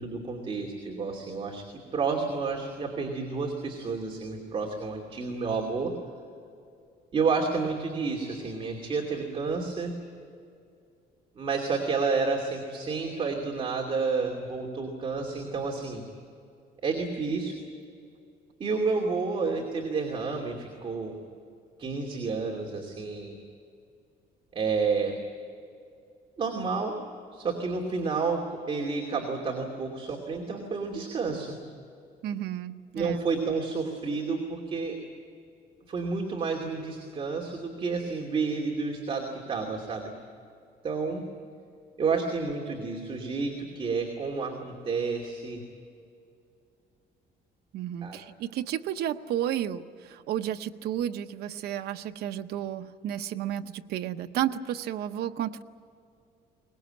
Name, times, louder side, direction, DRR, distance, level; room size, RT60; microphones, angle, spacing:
voice 1, 0.0-6.0 7.1-10.0 11.4-16.0 16.8-17.6 18.6-21.2 21.8-23.4 24.5-25.2 26.4-27.0 27.3-31.6 32.9-35.0 35.9-40.1 40.8-41.2 42.0-45.6 48.0-48.2, right 4 dB, 30° right, 0 dB, 2.7 m, -30 dB
voice 2, 32.2-33.2 47.7-55.6, right 11 dB, 70° right, 7 dB, 0.8 m, -32 dB
23.0 x 20.0 x 8.9 m, 2.4 s
cardioid pair, 155°, 17 cm